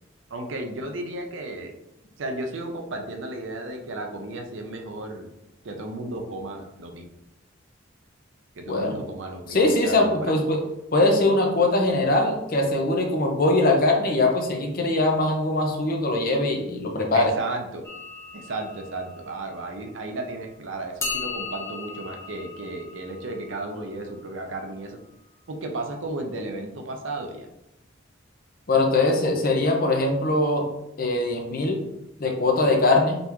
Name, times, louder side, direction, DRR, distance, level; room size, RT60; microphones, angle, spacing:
voice 1, 0.3-1.7 2.2-5.3 5.6-7.1 8.5-9.6 9.8-10.3 17.1-17.9 18.3-25.0 25.5-27.5, right 2 dB, 80° right, 4 dB, 0.6 m, -34 dB
voice 2, 9.5-10.6 10.9-17.3 28.7-30.7 31.0-31.8 32.2-33.2, left 2 dB, 50° left, 2 dB, 0.8 m, -21 dB
sound 1, 17.8-20.3 21.0-24.9, left 4 dB, 15° left, 0.8 m, -38 dB
3.9 x 3.4 x 2.9 m, 0.87 s
head